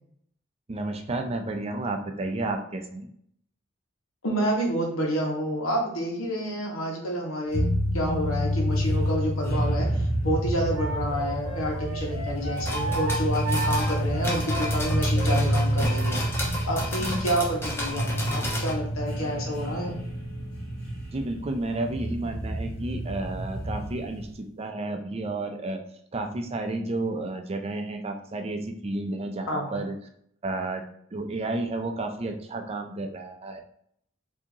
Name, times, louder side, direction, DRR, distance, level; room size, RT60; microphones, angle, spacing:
voice 1, 0.7-3.1 17.0-17.3 21.1-25.8 26.1-29.9 30.4-30.8 31.1-33.6, right 2 dB, 30° right, 5 dB, 0.4 m, -31 dB
voice 2, 4.2-7.6 7.9-20.0 29.5-29.7, equal, 85° left, -1 dB, 1.2 m, -29 dB
sound 1, 7.5-24.3, equal, 45° left, 1.7 m, -28 dB
Wind instrument woodwind instrument, 10.7-16.2, right 1 dB, 15° right, 1.0 m, -35 dB
sound 2, 12.6-18.7, left 1 dB, 10° left, 0.7 m, -33 dB
4.8 x 2.8 x 2.7 m, 0.68 s
head